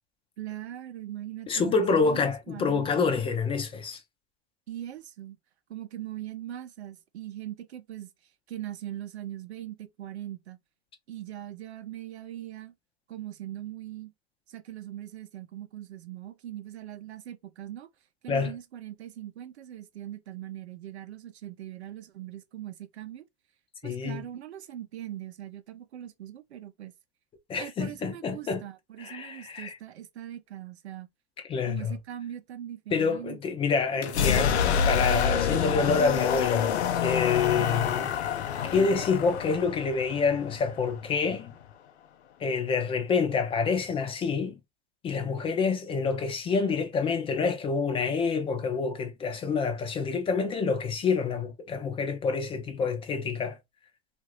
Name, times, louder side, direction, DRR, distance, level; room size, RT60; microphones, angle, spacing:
voice 1, 0.4-3.1 4.7-5.4 5.7-8.1 8.5-10.6 11.1-12.7 13.1-14.1 14.5-17.9 18.2-23.2 23.8-26.9 27.6-31.1 31.7-33.7 37.5-37.7, right 12 dB, 85° right, 0.6 m, -41 dB
voice 2, 1.5-4.0 18.3-18.5 23.8-24.2 27.5-28.6 29.0-29.7 31.5-32.0 32.9-38.2 38.7-41.5 42.4-44.6 45.0-53.6, left 5 dB, 15° left, 0.5 m, -27 dB
sound 1, 34.0-41.7, left 7 dB, 80° left, 0.6 m, -27 dB
2.7 x 2.6 x 3.0 m
hypercardioid pair, 125°, 32 cm